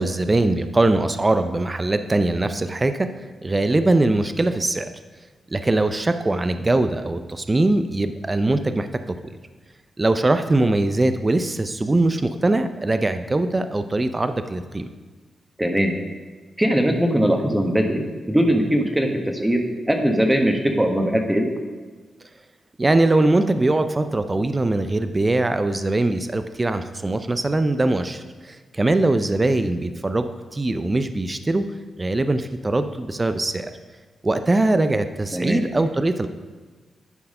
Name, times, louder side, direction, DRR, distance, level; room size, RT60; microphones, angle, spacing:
voice 1, 0.0-3.1 3.4-4.9 5.5-8.9 10.0-14.8 22.8-31.6 32.0-33.7 34.2-36.3, right 2 dB, 30° right, 9 dB, 0.5 m, -21 dB
voice 2, 15.6-15.9 16.6-19.1 19.3-19.6 19.9-21.5 35.3-35.6, equal, 10° right, 3 dB, 1.3 m, -20 dB
11.0 x 4.7 x 5.4 m, 1.4 s
cardioid pair, 60°, 0 cm